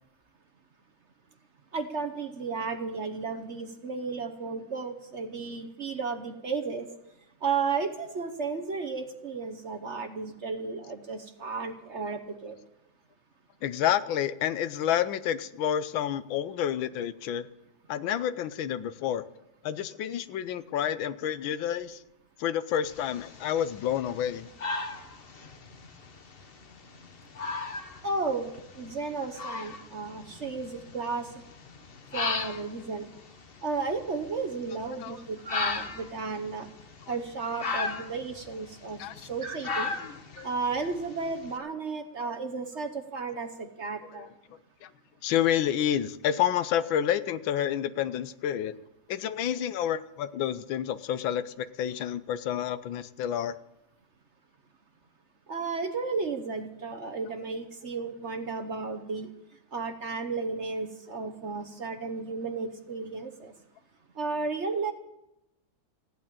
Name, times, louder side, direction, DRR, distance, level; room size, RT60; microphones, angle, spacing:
voice 1, 1.7-6.9 7.4-12.5 28.0-28.5 28.7-31.3 32.1-33.1 33.6-36.7 37.1-39.9 40.4-44.3 55.5-59.3 59.7-63.5 64.2-64.9, right 4 dB, 45° right, 6 dB, 1.1 m, -33 dB
voice 2, 13.6-17.5 17.9-19.2 19.6-22.0 22.4-24.5 35.0-35.2 39.0-39.1 40.3-40.5 42.2-42.3 44.1-44.2 44.8-44.9 45.2-48.7 49.1-53.5, left 10 dB, 90° left, 14 dB, 1.5 m, -29 dB
sound 1, 22.8-41.5, left 4 dB, 40° left, 1.0 m, -38 dB
15.5 x 8.7 x 8.7 m, 0.91 s
omnidirectional pair, 2.1 m